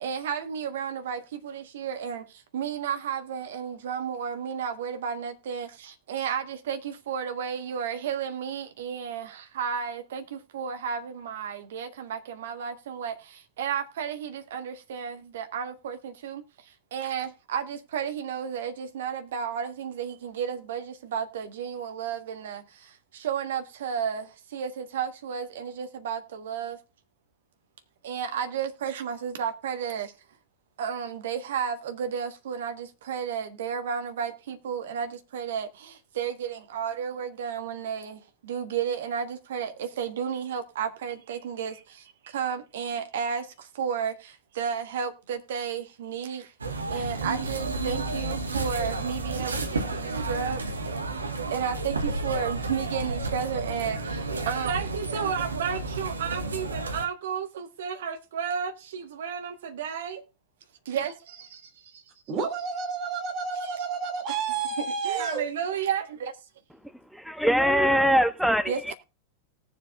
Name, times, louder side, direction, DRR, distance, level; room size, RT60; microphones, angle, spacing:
voice 1, 0.0-2.2 2.5-5.7 6.1-9.3 9.6-10.2 10.5-13.1 13.6-16.0 16.2-16.4 16.9-20.8 21.1-22.6 23.2-24.2 24.5-26.7 28.0-30.1 30.8-35.1 35.3-35.7 36.2-38.2 38.5-41.7 42.3-43.4 43.8-44.1 44.6-46.4 46.9-49.5 49.9-50.6 51.5-54.0 54.5-60.2 60.9-61.1 65.0-66.3 68.7-68.9, right 7 dB, 60° right, 1.4 m, -32 dB
sound 1, 46.6-57.0, right 2 dB, 75° right, 1.2 m, -31 dB
voice 2, 62.3-65.4, right 5 dB, 35° right, 3.1 m, -30 dB
voice 3, 67.1-68.9, equal, ahead, 0.5 m, -22 dB
19.0 x 7.3 x 2.5 m
figure-of-eight pair, 90°, 0 cm